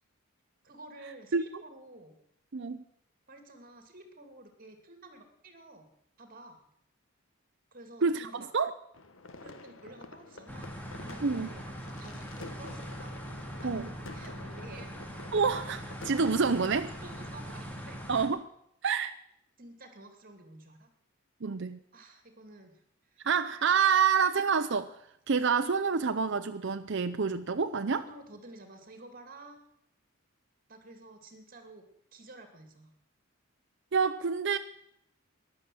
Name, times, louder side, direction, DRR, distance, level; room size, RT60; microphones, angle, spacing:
voice 1, 0.6-2.1 3.3-5.9 6.2-6.6 7.7-8.5 9.4-10.7 11.0-13.2 13.6-14.9 17.0-18.0 19.6-20.9 21.9-22.7 23.1-23.2 28.0-29.6 30.7-31.9 32.1-32.9, right 2 dB, 45° right, 2.6 m, -51 dB
voice 2, 2.5-2.8 8.0-8.7 11.2-11.5 13.6-13.9 15.3-16.9 18.1-18.5 18.8-19.2 21.4-21.8 23.2-24.9 25.3-28.0 33.9-34.6, right 5 dB, 60° right, 0.7 m, -27 dB
sound 1, 8.9-17.4, left 2 dB, 70° left, 1.4 m, -49 dB
sound 2, 10.5-18.3, equal, 10° left, 2.3 m, -42 dB
14.5 x 11.0 x 7.7 m
head